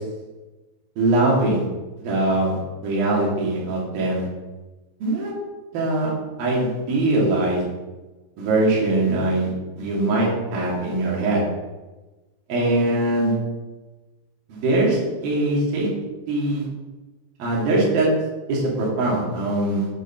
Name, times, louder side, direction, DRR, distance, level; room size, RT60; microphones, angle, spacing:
voice 1, 1.0-1.6 2.0-4.2 5.0-5.3 5.7-6.1 6.4-7.6 8.4-9.5 9.8-11.4 12.5-13.3 14.5-15.9 16.3-16.7 17.4-18.1 18.5-19.9, right 2 dB, 60° right, -5 dB, 4.1 m, -22 dB
7.8 x 7.2 x 5.9 m, 1.2 s
omnidirectional pair, 5.0 m